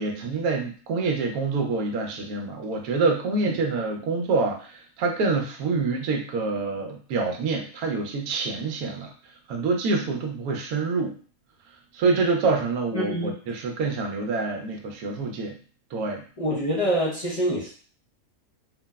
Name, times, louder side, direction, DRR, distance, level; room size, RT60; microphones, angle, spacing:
voice 1, 0.0-9.1 9.5-11.1 11.9-15.6 15.9-16.2, right 3 dB, 80° right, 2 dB, 1.0 m, -26 dB
voice 2, 12.9-13.3 16.4-17.7, equal, 40° left, -7 dB, 0.5 m, -25 dB
3.1 x 2.0 x 2.2 m, 0.41 s
omnidirectional pair, 1.5 m